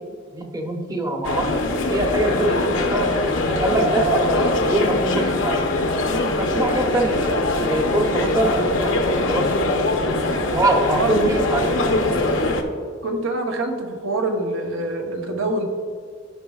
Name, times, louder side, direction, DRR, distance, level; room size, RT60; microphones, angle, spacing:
voice 1, 0.3-1.5 1.9-4.1 4.6-5.8 6.4-9.8 10.5-12.2, right 1 dB, 20° right, 2 dB, 0.8 m, -24 dB
sound 1, 1.2-12.6, left 2 dB, 65° left, 0.8 m, -22 dB
voice 2, 13.0-15.7, right 2 dB, 75° right, 3 dB, 0.9 m, -25 dB
13.5 x 5.5 x 2.3 m, 2.1 s
head